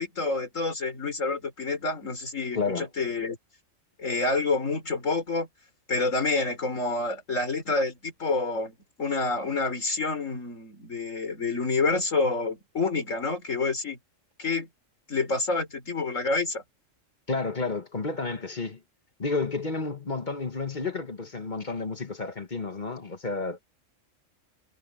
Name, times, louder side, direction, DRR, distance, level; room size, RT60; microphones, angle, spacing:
voice 1, 0.0-3.4 4.0-5.5 5.9-14.0 14.4-14.7 15.1-16.6, left 3 dB, 75° left, 4.2 m, -28 dB
voice 2, 2.5-2.9 17.3-18.8 19.2-23.6, left 3 dB, 35° left, 1.4 m, -31 dB
omnidirectional pair, 1.3 m